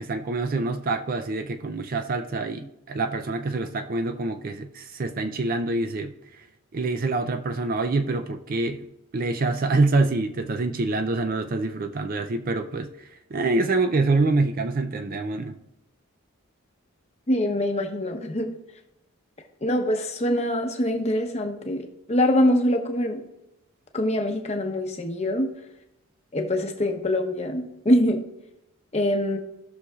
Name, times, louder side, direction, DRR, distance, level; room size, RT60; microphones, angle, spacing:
voice 1, 0.0-6.1 6.7-8.9 9.1-15.6, right 3 dB, 40° right, 8 dB, 0.4 m, -26 dB
voice 2, 17.3-18.5 19.6-23.2 23.9-25.5 26.3-28.2 28.9-29.4, left 1 dB, 30° left, 4 dB, 0.8 m, -24 dB
16.0 x 6.2 x 2.4 m, 0.86 s
head